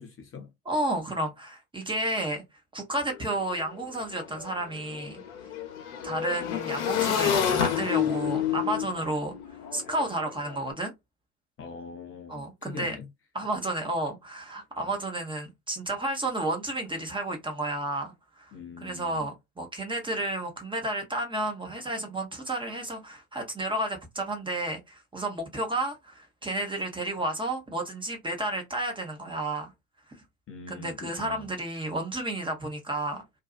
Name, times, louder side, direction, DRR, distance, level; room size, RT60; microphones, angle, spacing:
voice 1, 0.0-0.5 11.6-13.1 18.5-19.3 30.5-31.5, left 5 dB, 30° left, 0.7 m, -42 dB
voice 2, 0.7-2.4 2.7-5.2 6.0-9.4 9.7-10.9 12.3-13.0 13.3-18.5 18.8-29.7 30.7-33.2, right 1 dB, 10° right, 0.8 m, -31 dB
Motorcycle / Engine, 3.1-3.2 3.5-10.6, left 9 dB, 70° left, 0.9 m, -30 dB
2.6 x 2.3 x 2.4 m
hypercardioid pair, 75°, 44 cm